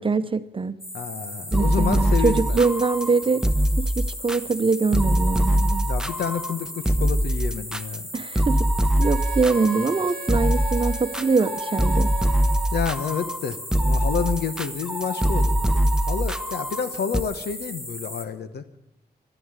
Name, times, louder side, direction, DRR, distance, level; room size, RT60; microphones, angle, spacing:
voice 1, 0.0-0.8 1.5-3.5 3.8-5.9 8.1-8.7 9.0-12.1, right 4 dB, 30° right, 0.9 m, -23 dB
sound 1, 0.8-18.2, left 1 dB, 15° left, 1.7 m, -37 dB
voice 2, 0.9-2.6 5.8-8.1 12.7-18.6, left 7 dB, 90° left, 1.1 m, -29 dB
sound 2, 1.5-17.2, equal, 5° right, 0.7 m, -23 dB
Wind instrument woodwind instrument, 9.0-12.8, right 6 dB, 70° right, 0.6 m, -39 dB
12.0 x 11.5 x 8.9 m
cardioid pair, 75°, 16 cm